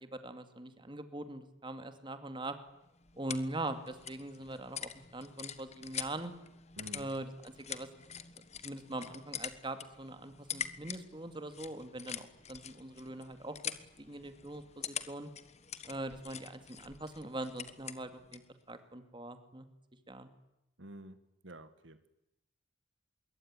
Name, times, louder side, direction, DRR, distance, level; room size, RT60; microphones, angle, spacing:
voice 1, 0.0-2.6 3.2-6.3 6.9-7.9 8.6-13.6 14.0-15.3 15.9-18.4 18.7-19.7 20.1-20.3, right 2 dB, 25° right, 9 dB, 2.3 m, -42 dB
sound 1, 2.7-18.5, left 8 dB, 35° left, 1.4 m, -45 dB
voice 2, 6.8-7.1 20.8-21.2 21.4-22.1, right 1 dB, 75° right, 11 dB, 1.8 m, -49 dB
26.0 x 22.5 x 9.8 m, 0.88 s
head